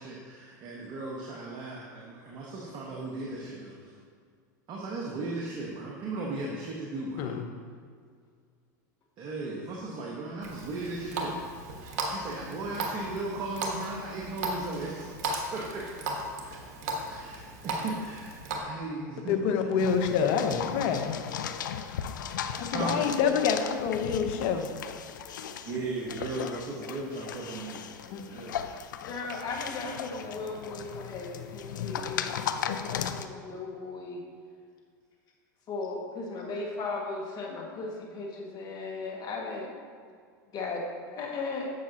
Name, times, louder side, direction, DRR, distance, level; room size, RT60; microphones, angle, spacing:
voice 1, 0.0-4.0 4.7-7.3 9.2-15.1 15.5-16.2 17.1-18.4 18.6-19.7 22.7-23.0 25.6-27.9 28.2-28.7, right 2 dB, 45° right, -3 dB, 1.3 m, -37 dB
Water tap faucet, 10.4-18.6, right 2 dB, 70° right, 1.4 m, -36 dB
voice 2, 19.3-21.1 22.6-24.7 28.1-28.2, left 6 dB, 60° left, 6 dB, 1.0 m, -27 dB
sound 1, 19.8-33.3, left 8 dB, 85° left, 0.5 m, -37 dB
voice 3, 29.0-34.2 35.7-39.7 40.5-40.8 41.1-41.7, left 3 dB, 40° left, 0 dB, 1.9 m, -37 dB
10.5 x 7.4 x 2.9 m, 2.1 s
hypercardioid pair, 100°, 10 cm